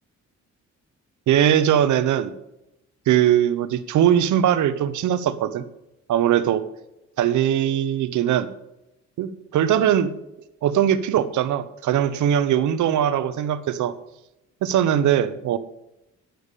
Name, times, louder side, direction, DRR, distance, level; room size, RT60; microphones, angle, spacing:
voice 1, 1.3-2.3 3.1-5.6 6.1-6.6 7.2-8.5 9.2-10.1 10.6-13.9 14.6-15.6, right 10 dB, 75° right, 13 dB, 0.9 m, -20 dB
9.4 x 6.7 x 8.3 m, 0.89 s
cardioid pair, 90°, 30 cm